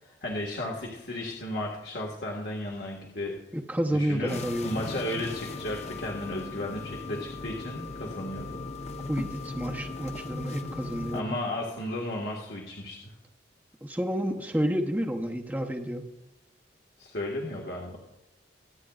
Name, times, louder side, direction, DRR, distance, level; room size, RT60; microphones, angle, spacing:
voice 1, 0.0-3.3 3.9-4.3 4.6-8.6 11.1-13.2 17.0-18.0, left 1 dB, 65° left, -2 dB, 1.7 m, -34 dB
voice 2, 3.5-4.8 9.1-11.4 13.8-16.1, equal, 10° right, 2 dB, 0.8 m, -30 dB
sound 1, 4.3-11.2, left 3 dB, 40° left, 0.8 m, -38 dB
25.0 x 9.1 x 2.4 m, 0.94 s
head